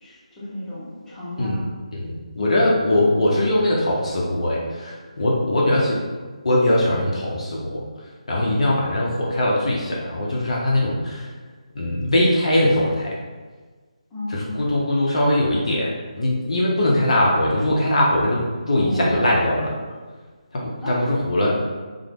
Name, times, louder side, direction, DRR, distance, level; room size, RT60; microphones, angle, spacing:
voice 1, 0.0-1.6 2.9-3.2 14.1-14.6 18.8-19.2 20.8-20.9, left 1 dB, 10° left, -13 dB, 1.0 m, -33 dB
voice 2, 1.9-6.0 6.4-7.8 8.3-11.2 11.7-13.1 14.3-18.4 18.7-19.7 20.5-21.6, left 1 dB, 55° left, -3 dB, 0.6 m, -21 dB
3.4 x 2.0 x 3.4 m, 1.4 s
figure-of-eight pair, 165°, 4 cm